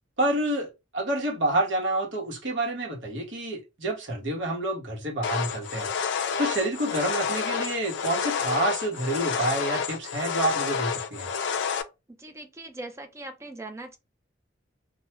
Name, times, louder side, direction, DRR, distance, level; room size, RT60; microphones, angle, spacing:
voice 1, 0.2-5.9 6.4-11.3, right 1 dB, 80° right, 1.0 m, -28 dB
sound 1, 5.2-11.8, left 6 dB, 70° left, 0.3 m, -29 dB
voice 2, 12.1-14.0, right 2 dB, 15° right, 0.4 m, -40 dB
2.3 x 2.2 x 2.9 m
head